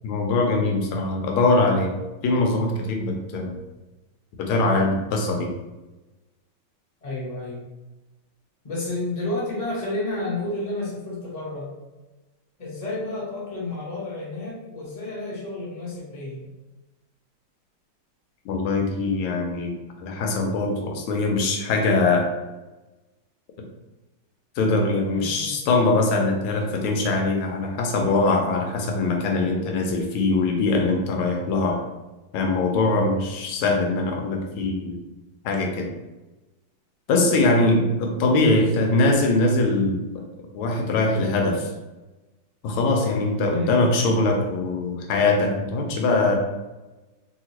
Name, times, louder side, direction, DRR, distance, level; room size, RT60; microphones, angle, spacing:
voice 1, 0.0-1.9 2.2-3.6 4.4-5.5 18.4-19.7 20.0-22.3 24.6-31.8 32.3-35.0 35.4-35.9 37.1-40.2 40.5-41.7 42.6-46.4, left 2 dB, 85° left, 2 dB, 1.4 m, -22 dB
voice 2, 7.0-7.6 8.6-11.7 12.6-16.5 25.1-25.5 38.5-38.8 43.5-43.8, left 2 dB, 30° left, -7 dB, 0.8 m, -31 dB
3.1 x 2.8 x 2.8 m, 1.1 s
omnidirectional pair, 2.3 m